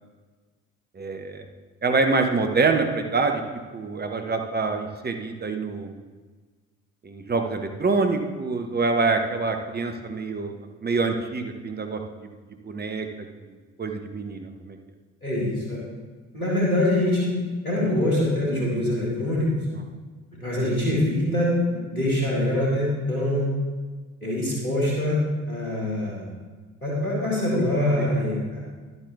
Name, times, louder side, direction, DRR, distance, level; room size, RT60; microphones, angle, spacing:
voice 1, 0.9-1.4 1.8-3.4 3.7-5.9 7.0-10.5 10.8-12.0 12.6-13.1 13.5-13.6 13.8-14.8 28.0-28.1, right 4 dB, 25° right, 5 dB, 1.0 m, -25 dB
voice 2, 15.2-15.8 16.3-17.4 17.6-19.5 20.4-23.5 24.2-26.3 26.8-28.6, left 1 dB, 90° left, -5 dB, 2.0 m, -24 dB
11.0 x 8.0 x 3.5 m, 1.4 s
figure-of-eight pair, 50°, 42 cm